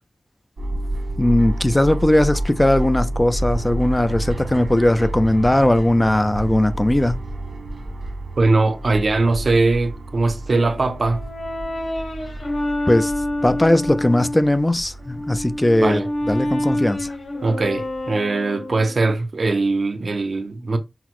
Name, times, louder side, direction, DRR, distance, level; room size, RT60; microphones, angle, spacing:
sound 1, 0.6-18.1, right 1 dB, 90° right, 0.8 m, -30 dB
voice 1, 1.2-7.2 12.9-13.1 13.4-16.0 16.3-17.1, left 1 dB, 15° left, 0.4 m, -18 dB
voice 2, 8.4-11.2 15.8-16.1 17.4-20.8, right 3 dB, 60° right, 0.5 m, -20 dB
Brass instrument, 10.5-14.5 15.0-19.1, left 1 dB, 70° left, 1.7 m, -27 dB
5.8 x 2.0 x 3.0 m
wide cardioid pair, 90°, 0 cm